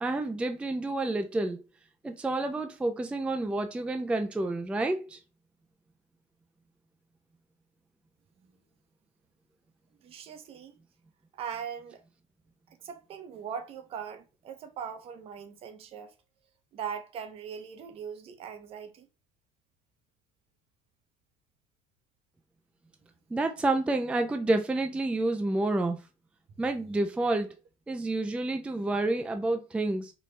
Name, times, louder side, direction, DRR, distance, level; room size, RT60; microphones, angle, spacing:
voice 1, 0.0-1.6 2.0-5.2 23.3-26.0 26.6-27.5 27.9-30.1, right 2 dB, 10° right, 0.3 m, -29 dB
voice 2, 10.0-10.8 11.3-12.0 12.8-16.1 16.7-19.1, right 7 dB, 45° right, 0.7 m, -40 dB
4.2 x 2.2 x 3.1 m
supercardioid pair, 115°, 13 cm